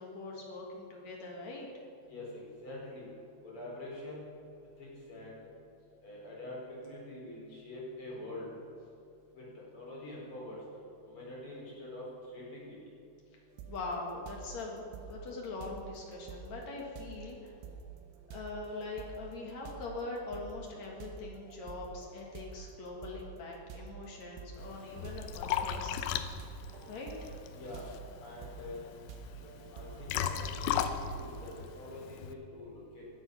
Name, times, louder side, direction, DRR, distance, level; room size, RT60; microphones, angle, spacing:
voice 1, 0.0-1.7 13.7-17.5 18.3-26.3 26.9-27.4, left 3 dB, 65° left, -1 dB, 1.7 m, -42 dB
voice 2, 2.0-3.1 3.4-4.3 4.8-5.4 6.0-8.5 9.3-10.6 11.0-12.1 12.3-12.7 25.0-25.1 27.5-27.9 28.2-28.8 29.7-33.0, left 1 dB, 30° left, -5 dB, 5.0 m, -45 dB
sound 1, 13.6-13.9 14.3-31.6, right 6 dB, 85° right, 3.7 m, -49 dB
Liquid, 24.6-32.3, left 9 dB, 90° left, 2.3 m, -37 dB
16.5 x 12.0 x 5.6 m, 2.7 s
omnidirectional pair, 5.8 m